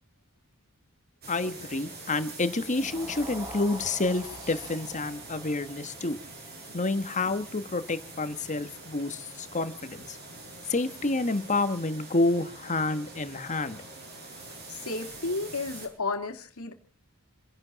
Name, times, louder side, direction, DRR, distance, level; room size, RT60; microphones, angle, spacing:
sound 1, 1.2-15.9, right 2 dB, 50° right, 7.0 m, -45 dB
voice 1, 1.3-6.2 6.7-10.2 10.7-13.8, left 2 dB, 35° left, 1.3 m, -29 dB
sound 2, 2.7-8.9, equal, 20° right, 3.0 m, -47 dB
voice 2, 14.7-16.7, left 3 dB, 85° left, 2.2 m, -32 dB
29.0 x 11.5 x 4.1 m
head